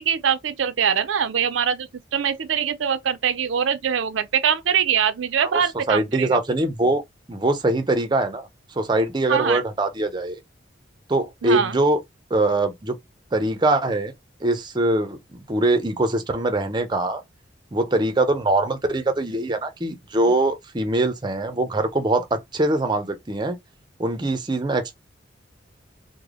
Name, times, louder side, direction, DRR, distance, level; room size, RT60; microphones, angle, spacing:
voice 1, 0.0-6.4 9.3-9.6 11.4-11.8, right 7 dB, 85° right, 0.5 m, -23 dB
voice 2, 5.4-7.0 7.3-8.5 8.8-10.4 11.1-12.0 12.3-13.0 13.3-14.1 14.4-17.2 17.7-23.6 24.0-25.0, right 2 dB, 25° right, 0.5 m, -22 dB
3.3 x 2.1 x 3.6 m
head